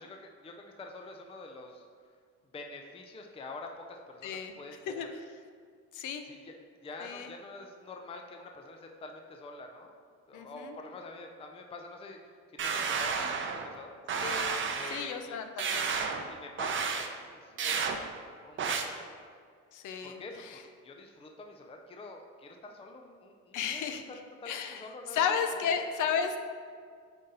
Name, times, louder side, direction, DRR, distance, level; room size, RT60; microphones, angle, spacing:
voice 1, 0.0-1.9 2.5-5.1 6.2-6.5 6.8-9.9 10.3-13.9 14.7-15.4 15.9-17.8 18.1-19.2 20.0-23.8 24.4-25.2 25.6-25.7, left 3 dB, 20° left, 3 dB, 0.5 m, -47 dB
voice 2, 4.2-4.5 4.9-5.1 5.9-6.2 7.0-7.3 10.3-10.8 14.2-15.9 19.7-20.6 23.5-24.0 24.5-24.8 25.1-26.4, left 7 dB, 65° left, 7 dB, 0.7 m, -33 dB
sound 1, 12.6-13.7 14.1-15.0 15.6-16.2 16.6-17.1 17.6-18.0 18.6-18.8, right 5 dB, 40° right, 0.6 m, -31 dB
8.1 x 3.9 x 3.9 m, 2.1 s
cardioid pair, 110°, 32 cm